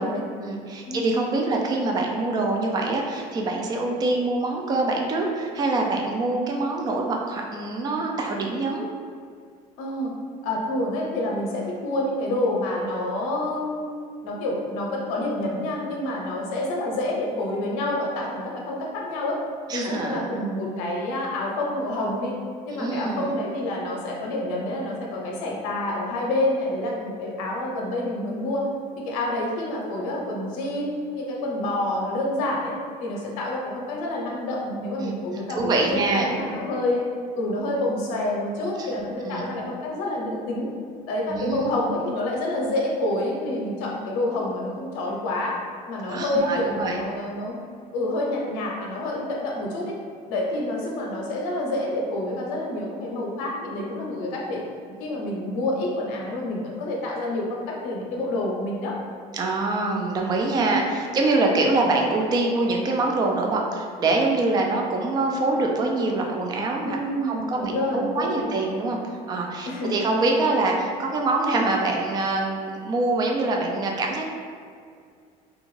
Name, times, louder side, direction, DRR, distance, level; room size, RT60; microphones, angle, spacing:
voice 1, 0.4-8.9 19.7-20.7 22.7-23.3 35.0-35.1 35.5-36.3 38.8-38.9 39.2-39.5 41.3-41.7 46.0-47.0 59.3-69.0 69.3-74.2, right 2 dB, 25° right, 0 dB, 0.3 m, -25 dB
voice 2, 9.8-10.1 10.4-14.0 14.2-19.4 19.7-22.4 22.6-28.7 29.0-32.7 33.0-37.0 37.3-40.7 41.1-45.5 45.9-47.6 47.9-49.9 50.3-54.6 55.0-58.9 60.5-60.8 66.8-68.5 69.6-70.0, left 1 dB, 80° left, -2 dB, 0.7 m, -28 dB
2.5 x 2.3 x 3.0 m, 2.2 s
supercardioid pair, 100°, 18 cm